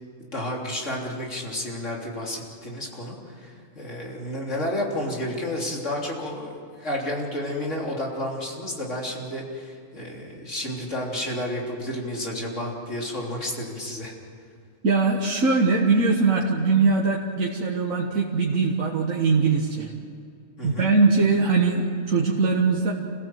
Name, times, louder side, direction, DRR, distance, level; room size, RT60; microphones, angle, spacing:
voice 1, 0.3-14.1 20.6-20.9, left 1 dB, 65° left, -2 dB, 3.8 m, -31 dB
voice 2, 14.8-19.9 20.6-22.9, right 4 dB, 85° right, -1 dB, 2.0 m, -21 dB
27.5 x 16.5 x 7.7 m, 2.4 s
omnidirectional pair, 1.4 m